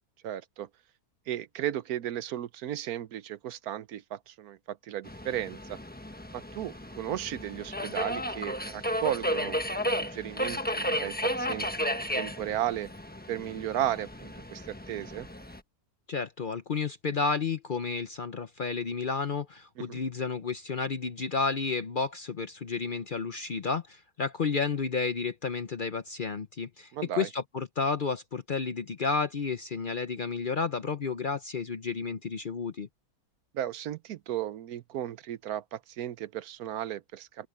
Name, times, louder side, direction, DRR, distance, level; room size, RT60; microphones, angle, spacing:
voice 1, 0.2-0.7 1.3-5.8 6.3-12.9 13.3-15.3 19.8-20.0 26.9-27.3 33.5-37.5, right 11 dB, 80° right, 1.2 m, -35 dB
Subway metro underground, 5.0-15.6, equal, 5° left, 1.0 m, -34 dB
voice 2, 16.1-32.9, left 4 dB, 45° left, 0.7 m, -31 dB
open air
omnidirectional pair, 1.6 m